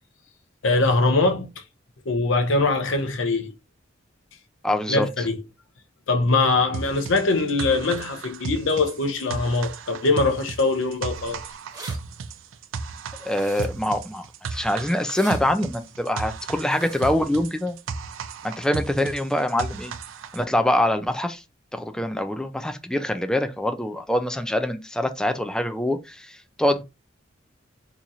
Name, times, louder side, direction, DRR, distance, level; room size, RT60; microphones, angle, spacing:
voice 1, 0.6-1.6 2.1-3.5 4.9-5.4 6.1-11.4, left 3 dB, 75° left, 0.7 m, -22 dB
voice 2, 4.6-5.1 13.2-14.2 14.5-17.8 18.4-19.9 20.3-21.4 21.7-26.8, left 1 dB, 5° left, 0.4 m, -24 dB
sound 1, 6.7-20.4, right 4 dB, 80° right, 0.4 m, -35 dB
sound 2, 11.7-12.0 13.3-13.9 15.0-15.4 16.6-17.1, right 3 dB, 20° right, 1.1 m, -40 dB
2.9 x 2.5 x 4.0 m
head